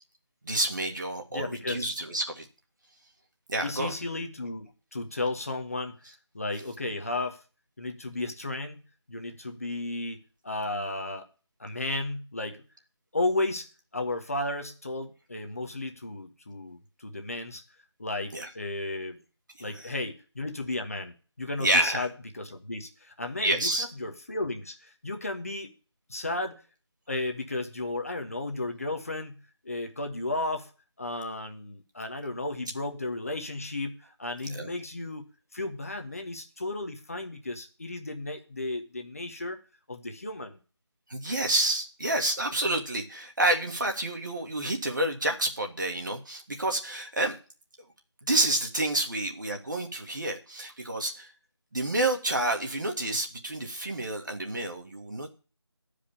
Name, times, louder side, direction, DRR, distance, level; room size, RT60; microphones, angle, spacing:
voice 1, 0.4-2.5 3.5-3.9 18.3-18.5 19.7-19.9 21.6-22.1 23.4-23.8 34.4-34.7 41.1-47.4 48.2-51.3 51.7-55.3, right 1 dB, 45° right, 3 dB, 2.0 m, -29 dB
voice 2, 1.3-1.9 3.6-7.4 7.8-8.8 9.1-10.2 10.4-11.2 11.6-12.6 13.1-13.7 13.9-17.6 18.0-19.2 19.6-22.1 22.3-25.7 26.1-26.6 27.1-29.4 29.6-30.7 31.0-39.6 39.9-40.6, left 2 dB, 30° left, 5 dB, 1.2 m, -34 dB
11.5 x 5.1 x 8.6 m, 0.36 s
figure-of-eight pair, 175°, 15 cm